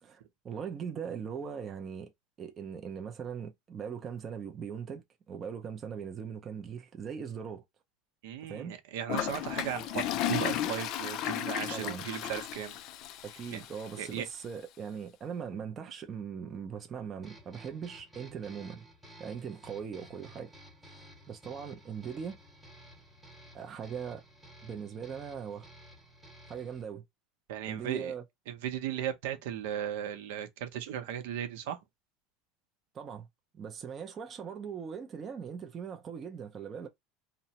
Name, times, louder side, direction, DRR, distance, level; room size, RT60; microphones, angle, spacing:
voice 1, 0.0-2.1 2.4-7.6 8.5-8.8 11.7-12.1 13.2-18.9 19.2-20.5 20.9-22.4 23.5-24.2 24.6-25.7 26.5-27.0 27.7-28.2 32.9-33.3 33.5-36.9, right 7 dB, 25° right, 0.5 m, -40 dB
voice 2, 8.2-12.7 13.5-13.6 14.0-14.3 27.5-28.1 28.5-31.8, right 10 dB, 80° right, 0.7 m, -36 dB
Toilet flush, 9.1-14.1, left 12 dB, 45° left, 0.3 m, -34 dB
sound 1, 17.2-26.8, equal, 5° right, 1.0 m, -54 dB
2.9 x 2.1 x 2.8 m
supercardioid pair, 160°, 0 cm